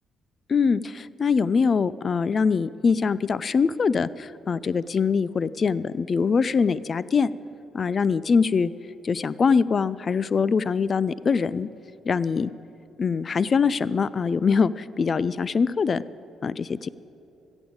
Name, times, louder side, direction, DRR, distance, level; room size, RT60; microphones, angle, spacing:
voice 1, 0.5-7.3 7.7-8.7 9.0-11.7 12.1-12.5 13.0-16.0 16.4-16.9, left 5 dB, 40° left, 18 dB, 0.3 m, -23 dB
15.0 x 7.1 x 8.7 m, 2.9 s
cardioid pair, 90°, 0 cm